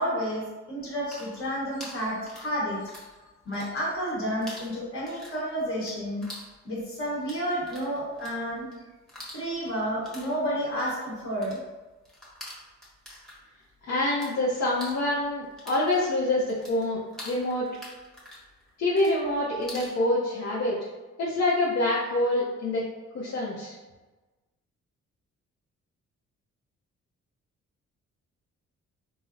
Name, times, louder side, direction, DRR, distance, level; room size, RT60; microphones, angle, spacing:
voice 1, 0.0-2.9 3.4-6.2 6.6-8.7 9.3-11.6, equal, 50° left, -5 dB, 1.3 m, -30 dB
sound 1, 0.9-3.1 3.4-4.1 4.4-14.3 14.6-20.0, left 1 dB, ahead, 0.9 m, -45 dB
voice 2, 13.9-17.7 18.8-20.8 21.2-22.8 23.1-23.7, left 1 dB, 65° left, -6 dB, 0.6 m, -26 dB
3.7 x 2.0 x 2.5 m, 1.2 s
cardioid pair, 105°, 29 cm